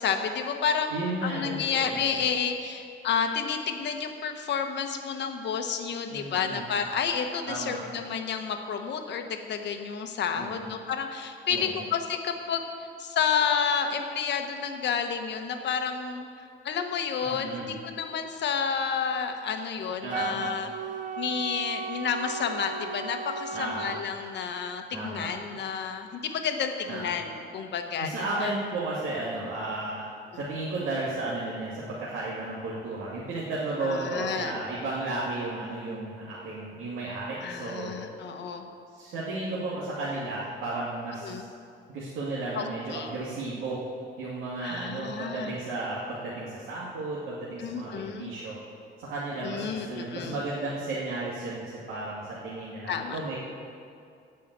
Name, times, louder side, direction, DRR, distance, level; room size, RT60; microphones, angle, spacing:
voice 1, 0.0-12.6 13.0-16.3 16.6-20.7 21.2-28.1 28.4-28.5 33.8-34.6 37.4-38.6 41.2-41.4 42.5-42.6 42.9-43.1 44.6-45.5 47.6-48.3 49.4-50.3 52.9-53.2, left 6 dB, 60° left, 5 dB, 1.2 m, -30 dB
voice 2, 0.9-2.0 6.1-6.7 7.5-7.8 10.3-10.7 11.5-11.8 17.2-17.7 20.0-20.4 23.5-24.0 24.9-25.3 26.9-27.1 28.0-30.1 30.4-37.9 38.9-41.5 41.9-43.8 44.2-48.6 49.0-53.4, right 2 dB, 90° right, -7 dB, 2.3 m, -34 dB
Wind instrument woodwind instrument, 20.1-24.0, right 6 dB, 40° right, 0.5 m, -36 dB
17.0 x 5.7 x 8.1 m, 2.4 s
cardioid pair, 140°, 20 cm